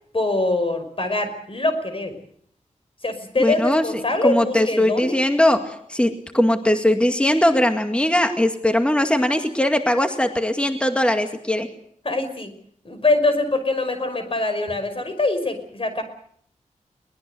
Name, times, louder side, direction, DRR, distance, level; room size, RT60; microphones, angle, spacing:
voice 1, 0.1-2.2 3.0-5.2 12.0-12.5 12.8-16.0, left 2 dB, 45° left, 9 dB, 5.5 m, -23 dB
voice 2, 3.4-3.8 4.2-11.7, left 1 dB, 10° left, 6 dB, 2.1 m, -20 dB
22.5 x 20.0 x 8.0 m, 0.65 s
wide cardioid pair, 85°, 13 cm